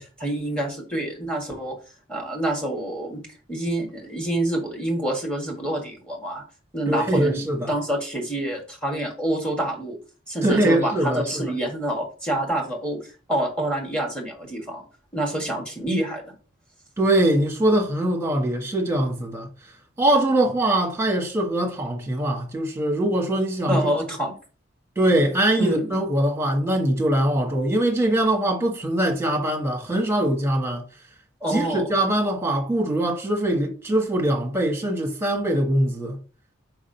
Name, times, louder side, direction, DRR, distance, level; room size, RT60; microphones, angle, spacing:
voice 1, 0.0-1.7 2.1-3.2 3.5-6.4 6.7-7.4 7.7-10.0 10.3-13.0 13.3-14.8 15.1-16.2 23.7-24.3 25.6-25.9 31.4-31.9, right 1 dB, 5° left, 1.6 m, -27 dB
voice 2, 6.9-7.7 10.4-11.4 17.0-19.5 20.0-23.8 25.0-30.8 31.5-36.2, right 1 dB, 15° right, 1.1 m, -22 dB
4.6 x 3.7 x 5.5 m
head